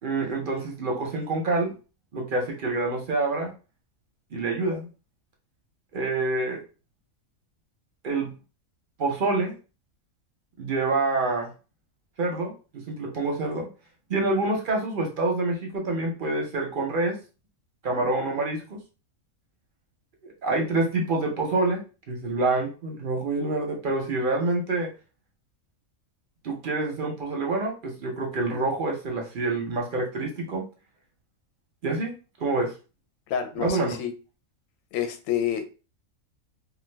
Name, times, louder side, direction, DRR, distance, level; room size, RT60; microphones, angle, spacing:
voice 1, 0.0-1.7 2.1-3.5 4.3-4.9 5.9-6.6 8.0-8.4 9.0-9.5 10.6-11.5 12.2-13.7 14.1-17.2 17.8-18.8 20.2-21.8 22.1-24.9 26.4-30.6 31.8-32.1 32.4-32.7 33.6-34.0, right 2 dB, 55° right, 1 dB, 0.6 m, -27 dB
voice 2, 33.3-34.1 34.9-35.6, left 9 dB, 75° left, 6 dB, 0.9 m, -28 dB
2.4 x 2.3 x 3.2 m, 0.33 s
omnidirectional pair, 1.5 m